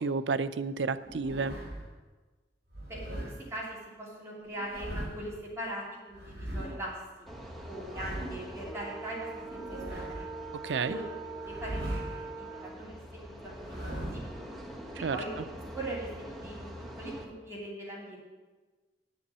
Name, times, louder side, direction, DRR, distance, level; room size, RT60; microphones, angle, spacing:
voice 1, 0.0-1.5 10.6-11.0 15.0-15.2, right 4 dB, 80° right, 13 dB, 0.5 m, -30 dB
sound 1, 1.0-1.9 2.7-3.3 4.5-5.3 6.1-6.7 7.7-8.5 9.4-10.3 11.4-12.3 13.5-14.4, right 1 dB, 60° right, 3.7 m, -39 dB
voice 2, 2.9-7.3 7.7-10.3 10.8-11.1 11.5-14.5 15.0-15.3 15.7-16.7 17.0-18.2, right 1 dB, 15° right, -6 dB, 2.6 m, -41 dB
sound 2, 7.3-17.2, right 2 dB, ahead, 1.0 m, -43 dB
9.7 x 7.0 x 7.4 m, 1.3 s
head